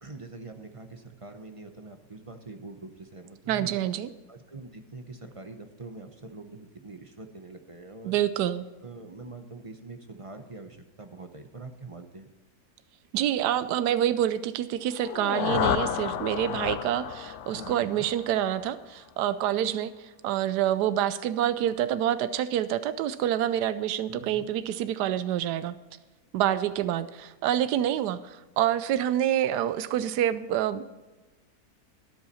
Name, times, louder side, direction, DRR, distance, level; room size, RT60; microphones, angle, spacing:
voice 1, 0.0-3.8 4.3-8.2 8.8-12.3 17.5-18.1 24.1-24.5, right 3 dB, 30° right, 6 dB, 0.7 m, -44 dB
voice 2, 3.5-4.1 8.0-8.6 13.1-25.7 26.3-30.9, right 11 dB, 90° right, 13 dB, 1.2 m, -27 dB
sound 1, 14.9-18.8, left 10 dB, 65° left, 0.7 m, -31 dB
13.0 x 10.5 x 4.2 m, 1.2 s
omnidirectional pair, 1.7 m